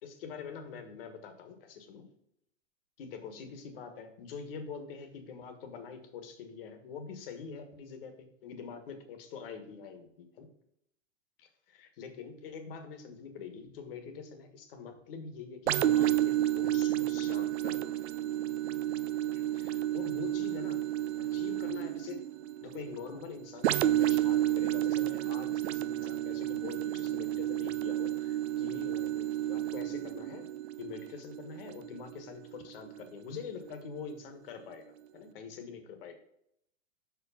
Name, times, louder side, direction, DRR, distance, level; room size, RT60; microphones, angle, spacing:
voice 1, 0.0-2.1 3.0-10.5 11.4-17.9 19.3-20.9 21.2-22.3 22.6-30.5 30.8-34.8 35.1-36.2, left 6 dB, 45° left, 6 dB, 1.4 m, -45 dB
sound 1, 15.7-33.2 33.7-33.9, right 13 dB, 60° right, 0.5 m, -31 dB
6.1 x 4.8 x 5.7 m, 0.75 s
hypercardioid pair, 160°, 38 cm